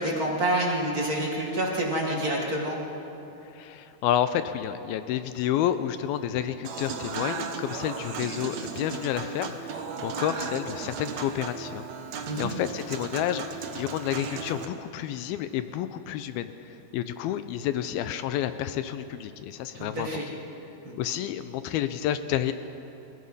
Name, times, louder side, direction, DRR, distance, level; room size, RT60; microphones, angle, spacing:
voice 1, 0.0-2.8 12.3-12.5 19.7-20.3 20.8-21.0, right 1 dB, 45° right, -2 dB, 1.2 m, -28 dB
voice 2, 3.5-11.9 12.4-20.1 21.0-22.5, left 11 dB, 80° left, 11 dB, 2.3 m, -30 dB
Human voice / Acoustic guitar / Piano, 6.6-14.7, right 5 dB, 65° right, 1.8 m, -36 dB
29.5 x 16.0 x 5.5 m, 2.9 s
omnidirectional pair, 4.8 m